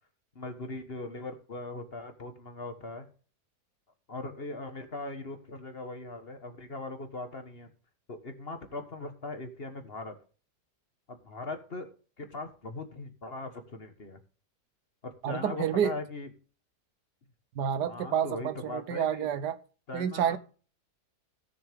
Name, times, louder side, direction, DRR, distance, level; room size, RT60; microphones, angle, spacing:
voice 1, 0.3-3.1 4.1-7.7 8.1-10.2 11.1-11.9 12.2-14.2 15.0-16.3 17.9-19.3 19.9-20.4, left 2 dB, 40° left, 7 dB, 1.5 m, -40 dB
voice 2, 15.2-15.9 17.6-19.6 19.9-20.4, right 8 dB, 80° right, 14 dB, 1.4 m, -29 dB
16.5 x 6.8 x 3.5 m, 0.38 s
omnidirectional pair, 1.8 m